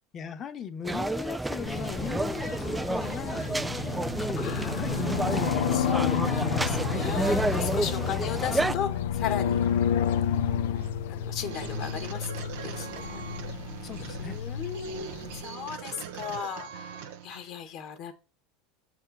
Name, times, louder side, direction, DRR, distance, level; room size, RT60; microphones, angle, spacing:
voice 1, 0.1-3.4 3.7-5.1 8.1-8.4 13.8-14.4, left 7 dB, 35° left, 1.2 m, -39 dB
sound 1, 0.8-8.7, right 2 dB, 10° right, 0.4 m, -30 dB
sound 2, 1.7-15.4, left 9 dB, 85° left, 0.8 m, -30 dB
voice 2, 4.4-9.6 11.1-12.3 12.6-13.2 14.2-18.1, left 8 dB, 55° left, 1.7 m, -36 dB
sound 3, 9.5-17.4, right 9 dB, 80° right, 1.1 m, -42 dB
7.4 x 4.5 x 5.7 m
supercardioid pair, 120°, 0 cm